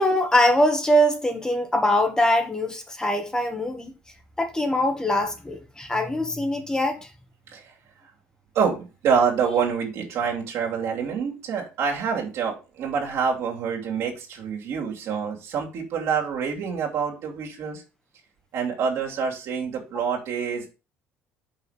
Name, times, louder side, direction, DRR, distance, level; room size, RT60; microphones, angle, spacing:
voice 1, 0.0-3.9 4.4-7.1 19.9-20.0, equal, 15° left, 1.5 m, -22 dB
voice 2, 8.5-17.8 18.5-20.7, right 6 dB, 65° right, 2.6 m, -26 dB
5.7 x 5.0 x 5.0 m
cardioid pair, 100°, 5 cm